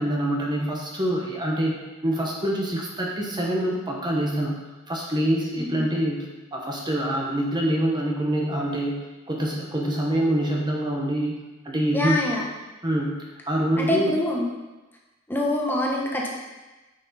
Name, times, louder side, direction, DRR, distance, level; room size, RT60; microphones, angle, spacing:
voice 1, 0.0-8.9 9.3-12.2 12.8-14.1, right 1 dB, 20° right, -2 dB, 1.1 m, -26 dB
voice 2, 5.6-5.9 11.9-12.4 13.8-14.5 15.3-16.3, left 1 dB, 10° left, -2 dB, 1.2 m, -25 dB
9.6 x 6.0 x 4.3 m, 1.1 s
head